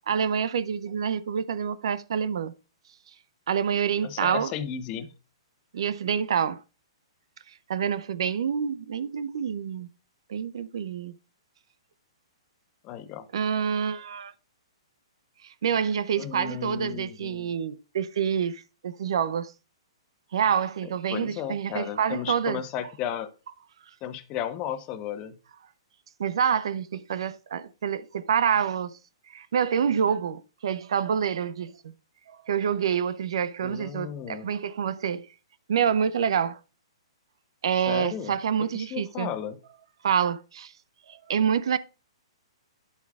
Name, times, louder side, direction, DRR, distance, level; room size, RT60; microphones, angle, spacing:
voice 1, 0.1-2.5 3.5-4.5 5.7-6.6 7.7-9.9 10.3-11.1 13.3-14.3 15.6-19.5 20.3-22.6 26.2-29.0 29.3-31.9 32.5-35.3 35.7-36.6 37.6-39.3 40.0-40.7 41.1-41.8, right 7 dB, 65° right, 0.6 m, -27 dB
voice 2, 4.0-5.1 12.8-13.2 16.2-17.5 20.8-23.3 24.0-25.4 33.6-34.5 37.7-39.6, left 9 dB, 30° left, 1.0 m, -34 dB
10.5 x 8.2 x 2.4 m
hypercardioid pair, 125°, 3 cm